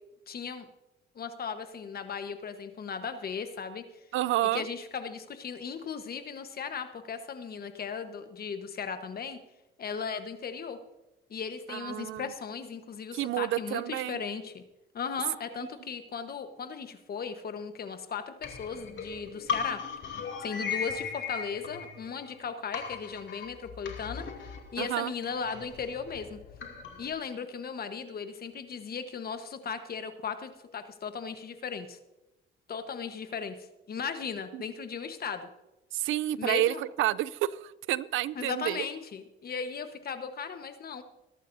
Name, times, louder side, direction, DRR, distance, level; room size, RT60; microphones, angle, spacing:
voice 1, 0.3-0.7 1.1-3.8 4.5-9.4 9.8-10.8 11.3-14.6 14.9-19.8 20.4-24.3 24.7-26.4 27.0-32.0 32.7-35.5 36.4-36.8 38.4-41.0, left 6 dB, 50° left, 9 dB, 1.2 m, -37 dB
voice 2, 4.1-4.7 11.7-12.3 13.1-14.2 24.8-25.1 34.5-34.6 35.9-38.8, right 14 dB, 80° right, 20 dB, 0.4 m, -30 dB
sound 1, 18.4-22.4 22.7-27.1, left 6 dB, 70° left, 2.6 m, -38 dB
22.0 x 11.5 x 2.7 m, 1.0 s
cardioid pair, 90°, 20 cm